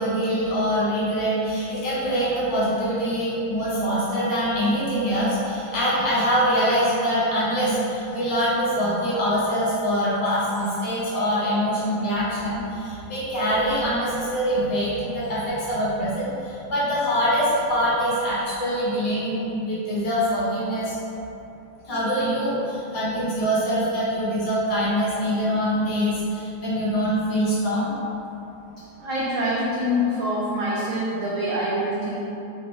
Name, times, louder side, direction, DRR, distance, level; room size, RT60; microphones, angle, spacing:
voice 1, 0.0-21.0 21.9-27.9, equal, 70° left, -8 dB, 1.9 m, -24 dB
voice 2, 29.0-32.2, equal, 75° right, -6 dB, 0.7 m, -25 dB
3.8 x 3.0 x 3.6 m, 2.8 s
omnidirectional pair, 1.9 m